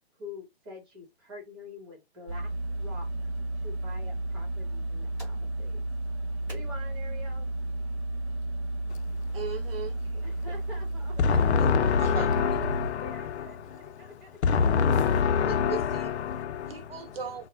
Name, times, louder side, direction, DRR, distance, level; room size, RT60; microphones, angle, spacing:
voice 1, 0.2-3.1 3.5-5.8 6.5-7.5 10.2-11.7 12.1-14.4, left 2 dB, 25° right, 1.0 m, -46 dB
sound 1, 2.3-12.9, right 1 dB, 85° right, 0.9 m, -33 dB
sound 2, 4.7-9.7, right 1 dB, 5° right, 0.6 m, -57 dB
voice 2, 9.3-10.2 12.0-12.6 15.5-16.1 16.7-17.5, right 6 dB, 65° right, 0.8 m, -38 dB
voice 3, 11.2-17.2, left 6 dB, 85° left, 0.5 m, -26 dB
2.3 x 2.0 x 3.2 m
hypercardioid pair, 165°, 32 cm